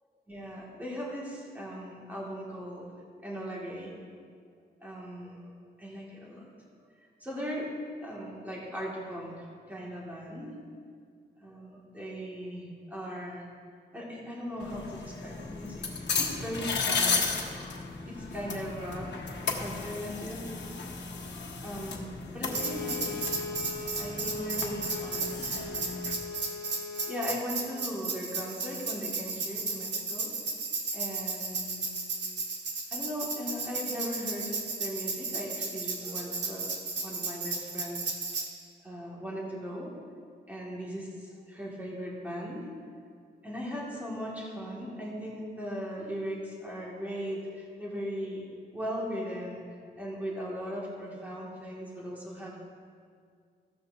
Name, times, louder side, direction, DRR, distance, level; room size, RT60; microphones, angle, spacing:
voice 1, 0.3-2.9 3.2-3.9 4.8-5.5 5.8-6.7 7.2-7.7 8.0-10.6 11.4-13.5 13.9-17.4 18.0-20.5 21.6-23.2 23.9-26.4 27.1-30.3 30.9-31.8 32.9-38.0 38.8-39.9 40.5-42.7 43.4-48.5 48.7-49.6 50.0-52.6, equal, 10° right, -6 dB, 2.2 m, -38 dB
sound 1, 14.6-26.1, left 4 dB, 70° left, 1.3 m, -35 dB
Bowed string instrument, 22.4-27.5, left 4 dB, 55° left, 1.3 m, -40 dB
Tambourine, 22.5-38.5, right 4 dB, 80° right, 1.7 m, -34 dB
15.5 x 13.5 x 2.8 m, 2.1 s
wide cardioid pair, 175°, 18 cm